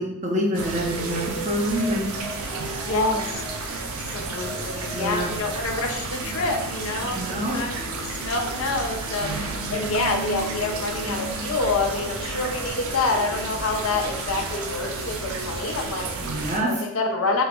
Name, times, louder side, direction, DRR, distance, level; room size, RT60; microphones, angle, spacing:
voice 1, 0.0-2.1 4.9-5.3 7.1-7.5 16.2-16.7, equal, 30° right, -1 dB, 0.6 m, -26 dB
sound 1, 0.5-16.6, right 3 dB, 85° right, 0.5 m, -31 dB
voice 2, 2.8-3.4 4.0-16.1 16.7-17.4, left 3 dB, 80° left, 2 dB, 0.5 m, -27 dB
3.6 x 2.0 x 2.9 m, 0.92 s
head